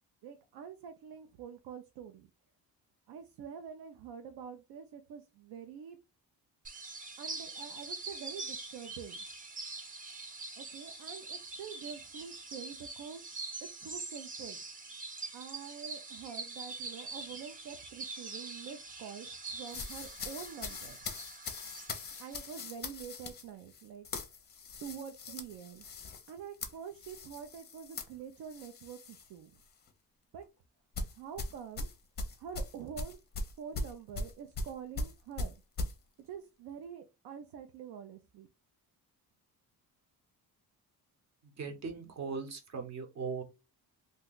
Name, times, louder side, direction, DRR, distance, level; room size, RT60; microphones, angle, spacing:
voice 1, 0.2-2.3 3.1-6.0 7.2-9.3 10.6-13.2 13.6-14.6 15.3-21.0 22.2-24.1 24.8-25.8 26.3-29.6 30.3-30.5 31.2-31.9 32.4-33.2 33.6-35.5 36.2-38.5, right 7 dB, 85° right, 7 dB, 0.6 m, -46 dB
sound 1, 6.6-22.6, right 3 dB, 25° right, 0.4 m, -44 dB
sound 2, 19.7-29.3 29.6-29.9 30.9-35.9, left 2 dB, 25° left, 0.5 m, -40 dB
voice 2, 41.4-43.4, right 5 dB, 45° right, 6 dB, 0.8 m, -39 dB
2.7 x 2.2 x 3.7 m, 0.27 s
cardioid pair, 170°, 38 cm